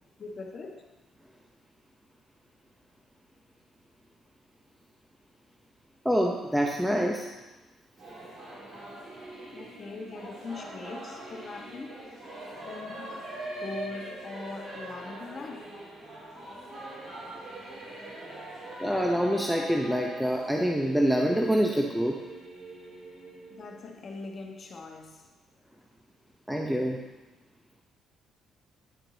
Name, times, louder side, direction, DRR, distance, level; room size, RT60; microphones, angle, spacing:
voice 1, 0.2-0.8 9.5-11.9 12.6-13.3 13.6-15.8 23.5-25.3, left 3 dB, 40° left, 1.2 m, -41 dB
voice 2, 6.0-7.3 18.8-22.2 26.5-27.0, equal, 5° right, 0.7 m, -26 dB
Singing / Musical instrument, 8.0-24.3, right 1 dB, 50° right, 2.6 m, -42 dB
10.5 x 4.5 x 3.9 m
cardioid pair, 110°, 0 cm